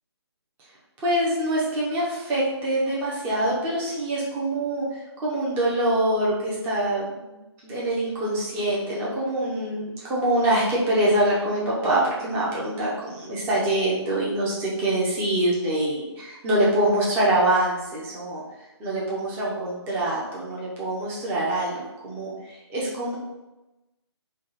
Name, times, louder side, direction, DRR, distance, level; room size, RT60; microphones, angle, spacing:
voice 1, 1.0-4.8 5.2-7.4 7.6-18.4 18.8-23.2, right 1 dB, 15° right, -6 dB, 0.8 m, -25 dB
3.7 x 2.3 x 4.0 m, 1.0 s
figure-of-eight pair, 150°, 14 cm